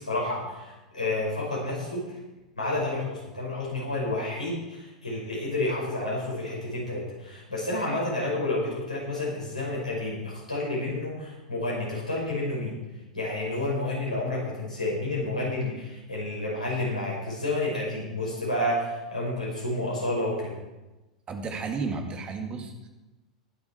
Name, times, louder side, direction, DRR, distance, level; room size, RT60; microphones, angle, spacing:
voice 1, 0.0-2.0 2.6-12.7 13.1-20.6, left 2 dB, 85° left, -4 dB, 5.5 m, -30 dB
voice 2, 21.3-22.9, right 4 dB, 25° right, 4 dB, 2.0 m, -33 dB
20.5 x 6.9 x 4.5 m, 1.1 s
figure-of-eight pair, 90°, 4 cm